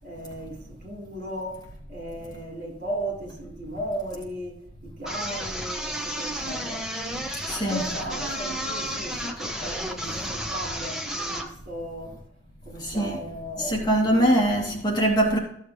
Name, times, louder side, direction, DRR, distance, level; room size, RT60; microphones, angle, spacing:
voice 1, 0.0-6.9 7.5-12.2 12.6-14.4, right 1 dB, 55° right, 4.6 m, -36 dB
sound 1, 5.1-11.5, equal, 5° right, 1.2 m, -32 dB
voice 2, 7.1-7.8 12.8-13.2 13.6-15.4, right 1 dB, 25° left, 2.4 m, -23 dB
14.5 x 7.2 x 3.3 m
head